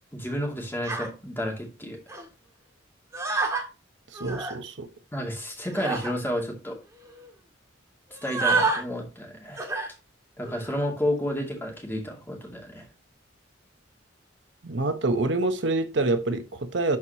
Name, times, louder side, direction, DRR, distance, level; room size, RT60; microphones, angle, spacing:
voice 1, 0.1-2.0 5.1-6.8 8.2-9.7 10.4-12.8, equal, 10° left, 2.4 m, -31 dB
sound 1, 0.8-1.1 2.1-2.3 3.1-3.7 4.1-4.6 5.7-6.1 6.7-6.8 7.0-7.3 8.1-8.8 9.6-9.9 10.4-10.8, right 3 dB, 15° right, 1.9 m, -28 dB
voice 2, 4.1-4.9 14.6-17.0, right 2 dB, 65° right, 0.9 m, -26 dB
11.5 x 4.7 x 2.9 m
head